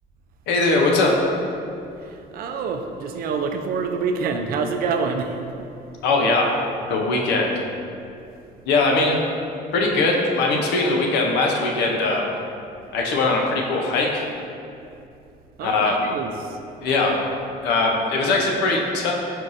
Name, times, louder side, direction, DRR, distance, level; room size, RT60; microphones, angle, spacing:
voice 1, 0.5-1.2 6.0-6.6 6.9-7.5 8.7-9.2 9.7-12.2 12.9-14.3 15.6-16.0 16.8-17.2 17.6-19.1, left 3 dB, 85° left, 0 dB, 0.7 m, -20 dB
voice 2, 2.0-5.4 15.6-16.6, right 5 dB, 60° right, 6 dB, 0.4 m, -26 dB
4.5 x 3.9 x 2.5 m, 2.6 s
cardioid pair, 110°, 17 cm